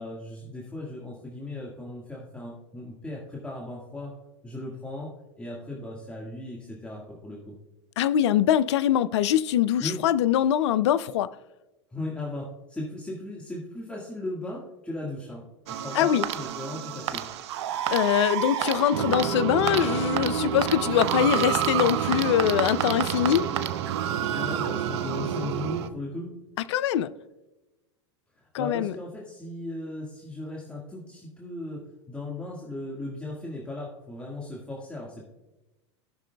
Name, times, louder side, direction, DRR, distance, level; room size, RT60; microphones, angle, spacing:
voice 1, 0.0-4.2 4.4-7.6 9.8-10.0 11.9-17.3 24.2-26.3 28.4-35.3, left 2 dB, 10° left, 1.7 m, -37 dB
voice 2, 8.0-11.3 15.9-16.3 17.9-23.5 26.7-27.1 28.5-28.9, left 10 dB, 70° left, 0.4 m, -23 dB
sound 1, 15.7-25.9, right 9 dB, 70° right, 0.6 m, -28 dB
17.5 x 6.0 x 2.2 m
hypercardioid pair, 100°, 15 cm